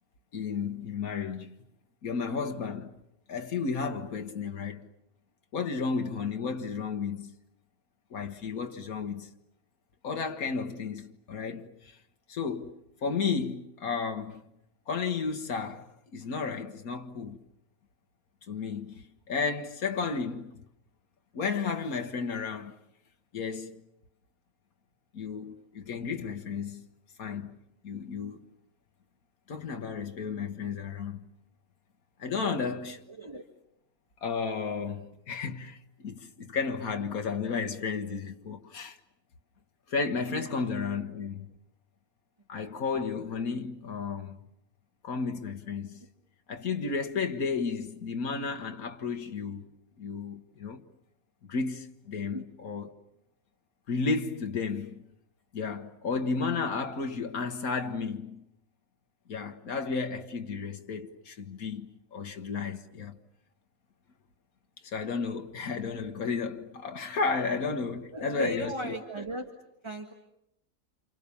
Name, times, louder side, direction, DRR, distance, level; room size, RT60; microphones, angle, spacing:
voice 1, 0.3-1.5 2.0-2.9 3.3-4.9 5.5-7.3 8.1-9.3 10.0-12.0 12.3-14.4 14.9-17.4 18.5-20.6 21.3-22.8 23.3-23.8 25.1-26.8 27.2-27.6 27.8-28.4 29.5-31.2 32.2-33.0 34.2-39.0 39.9-41.5 42.5-44.4 45.0-46.0 46.5-49.7 50.0-50.8 51.5-52.9 53.9-55.0 55.5-58.4 59.3-63.2 64.8-69.0, left 5 dB, 85° left, 1.9 m, -33 dB
voice 2, 33.1-33.4 52.3-52.4 68.1-69.6 69.8-70.1, right 1 dB, 20° right, 1.7 m, -36 dB
30.0 x 28.0 x 7.1 m
omnidirectional pair, 1.5 m